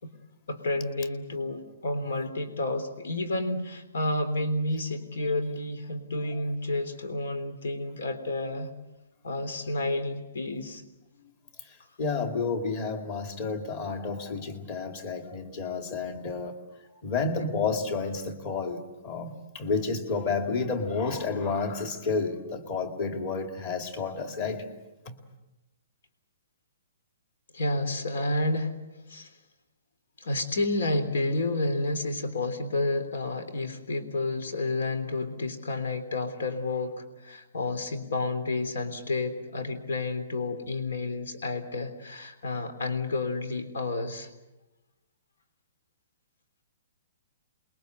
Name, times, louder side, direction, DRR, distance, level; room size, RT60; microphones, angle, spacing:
voice 1, 0.5-8.7 9.2-10.8 27.5-28.7 29.1-29.3 30.2-44.3, left 2 dB, 85° left, 9 dB, 3.4 m, -30 dB
voice 2, 11.6-16.6 17.0-24.7 25.1-25.2, left 4 dB, 25° left, 6 dB, 2.2 m, -31 dB
28.0 x 22.0 x 8.1 m, 1.0 s
hypercardioid pair, 175°, 0 cm